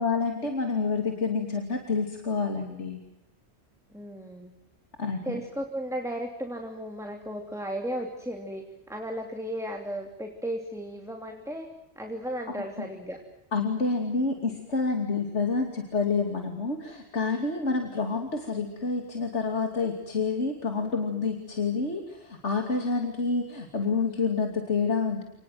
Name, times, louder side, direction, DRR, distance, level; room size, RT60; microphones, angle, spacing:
voice 1, 0.0-3.0 5.0-5.4 13.5-25.2, left 4 dB, 90° left, 4 dB, 3.0 m, -28 dB
voice 2, 3.9-4.5 5.2-11.7 12.0-13.2, equal, 5° right, 3 dB, 3.0 m, -35 dB
29.5 x 20.0 x 7.8 m, 0.90 s
omnidirectional pair, 1.1 m